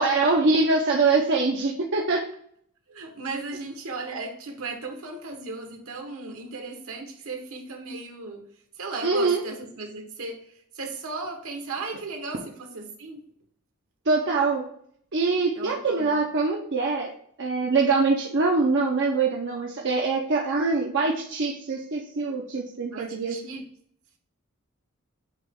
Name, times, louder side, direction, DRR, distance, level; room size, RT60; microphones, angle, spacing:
voice 1, 0.0-2.2 9.0-9.4 14.1-14.6 15.1-17.1 17.4-23.4, right 3 dB, 60° right, -1 dB, 0.8 m, -23 dB
voice 2, 2.9-8.5 8.8-13.2 15.5-16.2 22.9-23.6, right 3 dB, 75° right, 3 dB, 1.4 m, -36 dB
8.7 x 3.1 x 3.6 m, 0.65 s
head